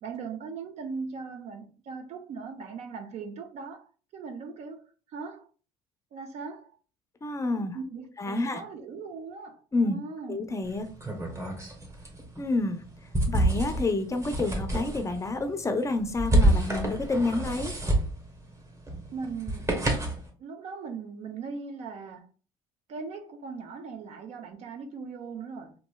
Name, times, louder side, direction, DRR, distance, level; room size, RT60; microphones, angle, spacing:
voice 1, 0.0-4.8 5.1-5.5 6.1-6.7 7.5-10.4 19.1-19.7 20.4-22.3 22.9-25.7, right 5 dB, 60° right, 0.6 m, -39 dB
voice 2, 7.2-7.8 8.2-8.6 9.7-10.0 10.3-10.9 12.4-12.8 13.3-17.7, left 2 dB, 25° left, 0.5 m, -28 dB
sound 1, 10.6-20.3, right 1 dB, 20° right, 1.0 m, -29 dB
3.0 x 2.6 x 2.2 m
supercardioid pair, 75°, 13 cm